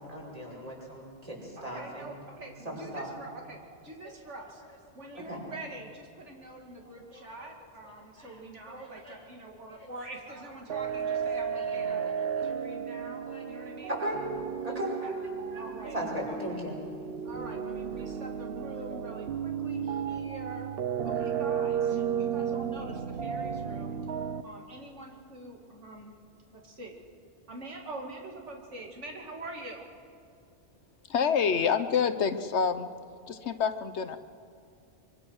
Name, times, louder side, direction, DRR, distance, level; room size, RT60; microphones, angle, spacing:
voice 1, 0.0-2.2 2.6-3.1 4.0-4.4 5.0-5.4 7.1-7.3 8.2-8.4 8.7-9.1 9.7-9.9 10.3-10.4 11.1-11.2 11.5-12.5 13.3-13.4 13.9-14.2 14.6-15.2 15.5-15.6 15.9-16.7 18.9-19.0, right 1 dB, 30° right, -3 dB, 5.5 m, -38 dB
voice 2, 1.6-3.6 3.8-4.6 4.9-12.0 12.4-13.9 15.0-15.1 15.5-16.6 17.2-20.7 21.0-24.0 24.4-26.2 26.5-26.9 27.5-29.9, right 2 dB, 85° right, 1 dB, 2.5 m, -45 dB
sound 1, 10.7-24.4, right 7 dB, 60° right, 0.9 m, -33 dB
voice 3, 31.1-32.9 33.3-34.2, left 6 dB, 70° left, 11 dB, 1.1 m, -27 dB
24.5 x 23.5 x 6.3 m, 2.3 s
omnidirectional pair, 1.2 m